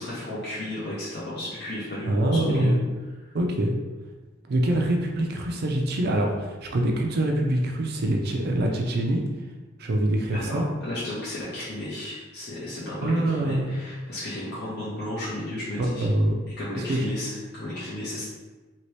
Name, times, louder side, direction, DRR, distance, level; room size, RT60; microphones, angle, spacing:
voice 1, 0.0-2.7 3.2-3.3 10.3-16.1 16.4-18.2, left 1 dB, 55° left, -9 dB, 0.8 m, -33 dB
voice 2, 2.0-2.8 3.3-3.7 4.5-9.2 9.8-10.7 13.0-13.7 15.8-16.3 16.8-17.1, right 1 dB, 55° right, 1 dB, 0.4 m, -24 dB
2.9 x 2.8 x 3.2 m, 1.3 s
head